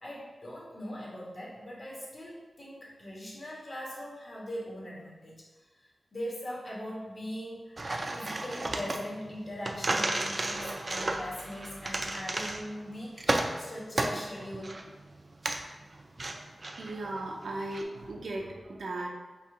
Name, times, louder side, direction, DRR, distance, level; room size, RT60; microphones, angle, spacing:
voice 1, 0.0-14.8, equal, 50° left, -4 dB, 1.5 m, -41 dB
sound 1, 7.8-17.8, right 2 dB, 40° right, 0.4 m, -34 dB
voice 2, 16.3-19.1, right 2 dB, 90° right, 0 dB, 0.7 m, -37 dB
4.2 x 2.5 x 4.8 m, 1.2 s
wide cardioid pair, 85°, 0 cm